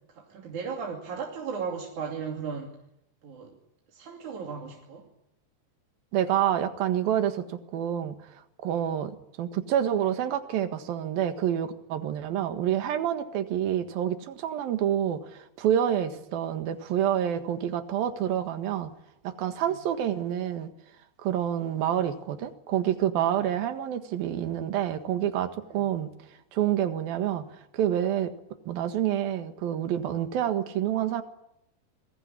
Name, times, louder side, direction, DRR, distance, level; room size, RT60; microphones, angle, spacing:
voice 1, 0.1-2.7 3.2-3.6 3.9-5.1 17.3-17.4 19.7-19.8 21.7-21.9 25.7-25.9, right 6 dB, 50° right, 1 dB, 3.7 m, -36 dB
voice 2, 6.1-8.2 8.6-18.9 19.2-20.7 21.2-26.1 26.5-27.5 27.7-28.3 28.7-31.2, right 10 dB, 65° right, 8 dB, 3.3 m, -28 dB
27.5 x 22.0 x 9.9 m, 0.83 s
omnidirectional pair, 4.8 m